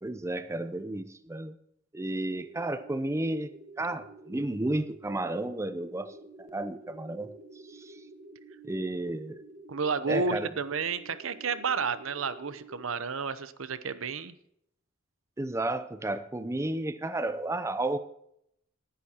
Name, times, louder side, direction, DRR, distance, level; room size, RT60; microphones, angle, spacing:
voice 1, 0.0-1.6 1.9-3.5 3.8-7.3 7.7-8.0 8.6-9.4 10.1-10.5 15.4-18.0, right 2 dB, 15° right, 12 dB, 0.5 m, -32 dB
sound 1, 2.3-12.8, right 2 dB, 40° right, 1.6 m, -50 dB
voice 2, 9.7-14.3, right 5 dB, 85° right, 13 dB, 0.8 m, -31 dB
19.5 x 11.0 x 2.9 m, 0.75 s
head